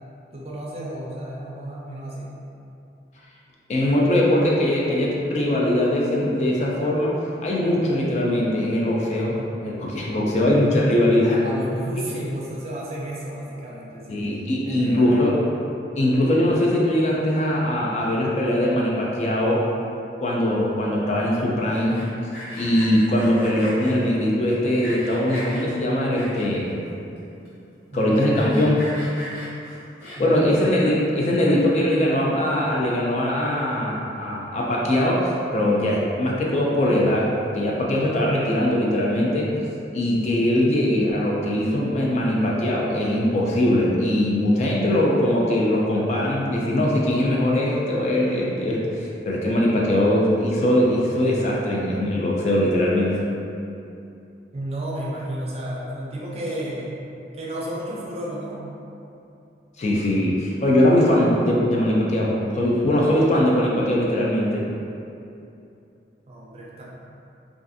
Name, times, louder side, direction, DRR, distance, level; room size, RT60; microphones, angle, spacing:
voice 1, 0.3-2.3 11.4-14.3 14.7-15.4 27.9-28.4 30.2-30.6 54.5-56.9 57.3-58.6 66.3-66.8, right 1 dB, 35° right, -5 dB, 0.4 m, -32 dB
voice 2, 3.7-7.1 7.4-9.3 9.6-11.4 14.1-15.4 16.0-19.6 20.2-22.1 22.6-26.8 27.9-28.9 30.2-37.3 37.5-39.5 39.9-53.2 59.8-64.6, left 1 dB, 40° left, -3 dB, 0.3 m, -21 dB
Sawing, 21.8-23.9 24.5-25.6 26.1-26.7 27.2-27.3 27.4-27.5 27.9-30.4, equal, 70° left, 0.9 m, -38 dB
2.4 x 2.4 x 2.5 m, 2.7 s
head